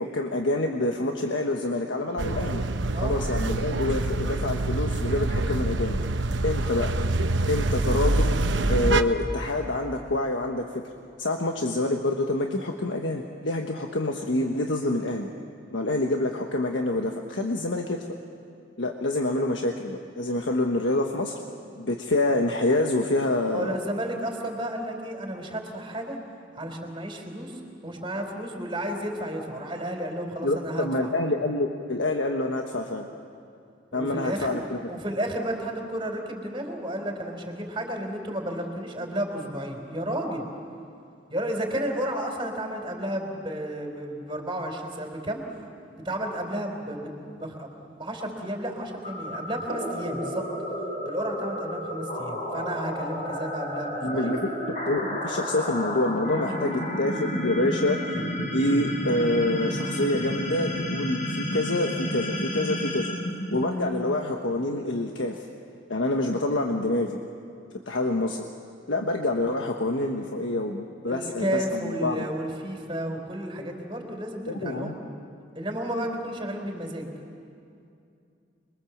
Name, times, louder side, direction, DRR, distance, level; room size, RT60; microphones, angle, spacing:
voice 1, 0.0-2.6 3.0-6.0 6.4-6.9 7.5-8.3 8.7-10.6 11.2-15.3 15.7-18.0 18.8-21.4 21.8-23.8 30.4-33.1 33.9-34.8 54.0-54.4 54.9-58.0 58.5-63.1 63.5-65.4 65.9-67.2 67.9-68.4 68.9-72.2 74.5-75.0, left 2 dB, 80° left, 2 dB, 1.3 m, -27 dB
sound 1, 2.2-9.0, right 2 dB, 80° right, 1.0 m, -25 dB
voice 2, 23.5-26.2 26.5-31.1 33.9-34.5 34.9-40.5 41.3-45.4 45.9-50.5 51.1-54.4 71.1-75.0 75.5-77.1, right 1 dB, 25° right, 2 dB, 3.9 m, -32 dB
sound 2, 49.0-64.2, equal, 45° left, 5.1 m, -31 dB
27.0 x 23.0 x 7.3 m, 2.5 s
head